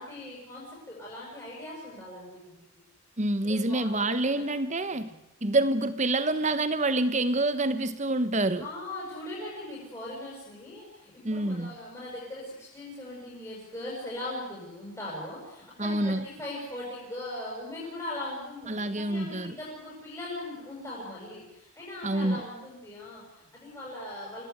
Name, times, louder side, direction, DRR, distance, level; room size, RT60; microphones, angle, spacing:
voice 1, 0.0-2.6 3.5-4.4 4.9-5.2 8.6-24.4, left 1 dB, 15° left, 6.8 m, -40 dB
voice 2, 3.2-5.1 5.4-8.7 11.2-11.7 15.8-16.3 18.7-19.5 22.0-22.4, right 2 dB, 35° right, 1.3 m, -27 dB
26.0 x 18.0 x 8.2 m
head